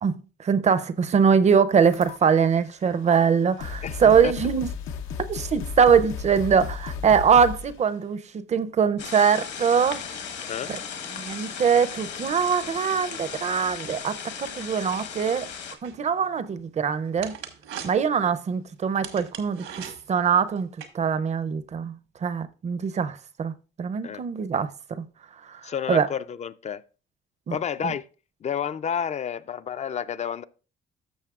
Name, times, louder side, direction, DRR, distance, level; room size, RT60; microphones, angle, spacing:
voice 1, 0.0-4.7 5.3-10.0 10.7-10.8 11.1-15.5 15.8-17.4 17.8-20.7 20.9-22.0 22.2-24.7 25.0-25.1 25.5-25.6 25.9-26.1 27.5-27.6 27.8-27.9, right 6 dB, 35° right, 0.5 m, -22 dB
sound 1, 1.8-2.5 3.2-3.3 3.6-7.8, left 6 dB, 85° left, 0.8 m, -34 dB
voice 2, 3.8-4.3 10.5-10.7 24.0-24.2 25.6-26.8 27.5-28.0 28.4-30.4, left 8 dB, 35° left, 0.4 m, -30 dB
sound 2, 9.0-15.7, left 7 dB, 60° left, 1.3 m, -36 dB
sound 3, 15.8-20.9, right 8 dB, 85° right, 1.3 m, -42 dB
13.5 x 6.3 x 2.4 m
cardioid pair, 120°, 20 cm